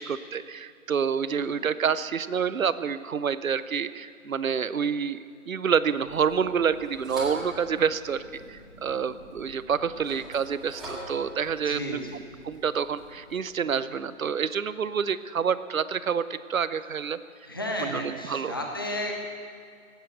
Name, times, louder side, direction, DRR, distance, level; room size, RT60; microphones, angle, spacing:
voice 1, 0.0-5.2 5.5-12.0 12.4-17.2 17.8-18.5, right 7 dB, 70° right, 15 dB, 0.7 m, -28 dB
voice 2, 1.3-1.6 11.6-12.2 17.4-19.4, left 1 dB, 15° left, 1 dB, 0.5 m, -33 dB
sound 1, 6.1-13.4, equal, ahead, 2.1 m, -44 dB
18.0 x 8.3 x 7.9 m, 2.2 s
figure-of-eight pair, 155°, 42 cm